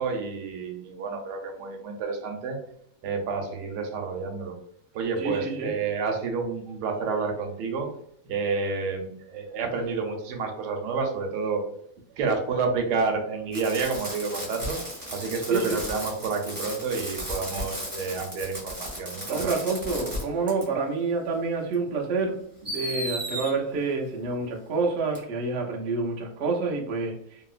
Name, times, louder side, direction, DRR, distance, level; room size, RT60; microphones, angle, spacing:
voice 1, 0.0-2.6 3.0-4.5 4.9-7.9 8.2-11.6 12.2-14.8 15.1-19.5, right 4 dB, 90° right, 3 dB, 1.2 m, -29 dB
voice 2, 5.2-5.7 15.5-15.8 19.3-22.4 22.6-27.4, right 4 dB, 55° right, 0 dB, 0.7 m, -28 dB
Fireworks, 13.5-20.2 20.5-20.6 21.7-21.8 22.6-23.5 25.1-25.2, equal, 15° right, 1.2 m, -35 dB
2.9 x 2.8 x 2.4 m, 0.68 s
omnidirectional pair, 1.7 m